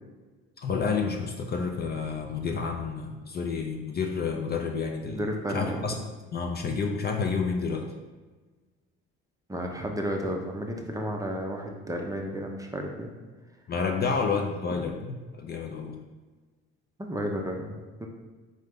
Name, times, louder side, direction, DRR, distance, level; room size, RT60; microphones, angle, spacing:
voice 1, 0.6-5.3 5.5-6.0 6.3-7.9 13.7-16.0, left 5 dB, 35° left, 3 dB, 0.5 m, -29 dB
voice 2, 5.1-5.8 9.5-13.1 17.0-18.1, equal, 10° right, 1 dB, 0.6 m, -32 dB
3.8 x 3.1 x 3.5 m, 1.3 s
supercardioid pair, 70°, 30 cm